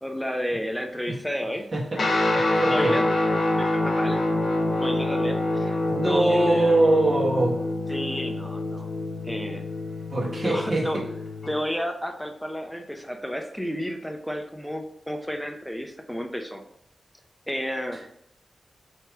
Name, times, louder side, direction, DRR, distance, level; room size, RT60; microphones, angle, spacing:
voice 1, 0.0-1.7 2.3-3.0 3.5-4.2 4.8-5.8 6.0-7.0 7.9-8.9 9.2-9.6 10.4-11.0 11.5-16.6 17.5-18.1, equal, 5° left, 4 dB, 0.6 m, -32 dB
voice 2, 1.7-3.0 5.9-7.6 10.1-11.1, right 2 dB, 50° right, -4 dB, 1.3 m, -23 dB
Guitar, 1.9-11.6, left 2 dB, 60° left, 1.0 m, -26 dB
3.1 x 3.0 x 4.6 m, 0.72 s
cardioid pair, 60°, 0 cm